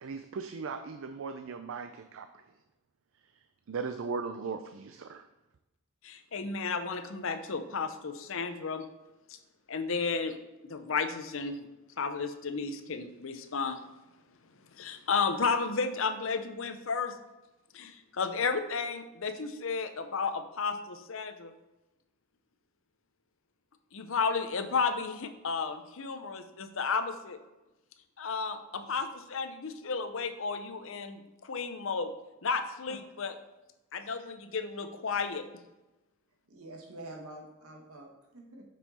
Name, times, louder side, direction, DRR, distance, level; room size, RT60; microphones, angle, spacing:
voice 1, 0.0-2.3 3.7-5.2, right 5 dB, 60° right, 8 dB, 0.4 m, -38 dB
voice 2, 6.0-8.9 9.3-9.4 9.7-10.4 10.6-11.7 12.0-13.8 14.7-17.2 17.7-21.5 23.9-27.4 28.2-32.1 32.4-33.3 33.9-35.4, left 5 dB, 60° left, 9 dB, 0.6 m, -33 dB
voice 3, 36.5-38.6, right 1 dB, 80° right, 0 dB, 1.6 m, -47 dB
7.4 x 5.5 x 4.2 m, 1.0 s
head